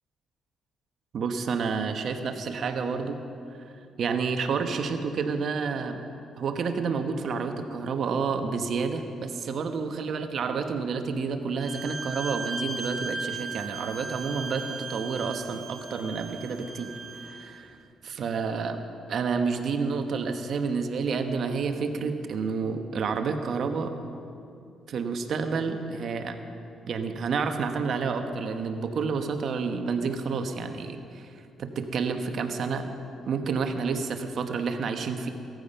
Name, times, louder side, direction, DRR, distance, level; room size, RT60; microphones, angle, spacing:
voice 1, 1.1-3.2 3.6-3.7 4.0-6.0 6.4-17.8 18.0-18.8 19.1-24.0 24.9-26.4 26.9-31.3 31.6-32.9 33.3-35.3, right 5 dB, 60° right, 6 dB, 1.3 m, -29 dB
Bowed string instrument, 11.6-17.3, right 4 dB, 30° right, 4.5 m, -37 dB
17.5 x 14.5 x 5.7 m, 2.6 s
cardioid pair, 90°, 0 cm